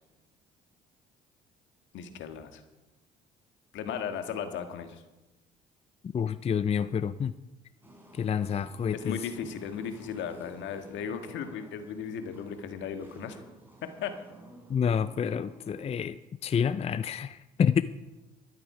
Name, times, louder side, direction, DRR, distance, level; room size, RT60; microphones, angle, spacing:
voice 1, 1.9-2.6 3.7-5.0 8.9-13.4 13.8-14.1, left 7 dB, 65° left, 7 dB, 1.6 m, -36 dB
voice 2, 6.1-7.3 8.2-9.2 14.7-16.2 16.4-17.8, left 7 dB, 30° left, 15 dB, 0.5 m, -28 dB
sound 1, 7.8-16.0, right 1 dB, 10° right, 4.6 m, -53 dB
13.0 x 11.5 x 4.8 m, 1.1 s
hypercardioid pair, 65°, 21 cm